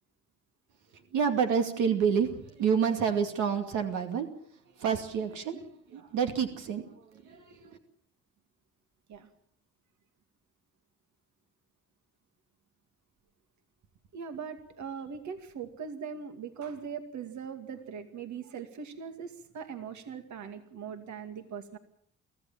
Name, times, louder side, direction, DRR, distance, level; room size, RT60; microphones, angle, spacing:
voice 1, 1.1-4.3 4.8-7.8, right 7 dB, 85° right, 4 dB, 2.5 m, -29 dB
voice 2, 14.1-21.8, right 6 dB, 70° right, 7 dB, 2.3 m, -40 dB
24.5 x 15.5 x 7.4 m, 0.64 s
cardioid pair, 90°, 30 cm